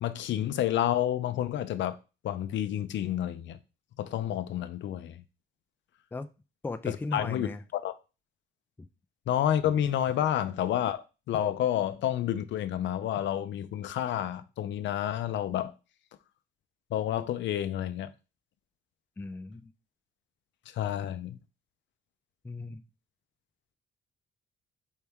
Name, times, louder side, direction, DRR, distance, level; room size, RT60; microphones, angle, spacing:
voice 1, 0.0-2.0 2.2-3.6 4.0-5.2 6.9-7.9 9.3-15.7 16.9-18.1 20.7-21.4, left 11 dB, 65° left, 0.5 m, -30 dB
voice 2, 6.6-7.6 8.8-8.9 19.2-19.7 22.4-22.8, left 3 dB, 10° left, 0.4 m, -37 dB
4.6 x 2.9 x 3.5 m
cardioid pair, 90°, 20 cm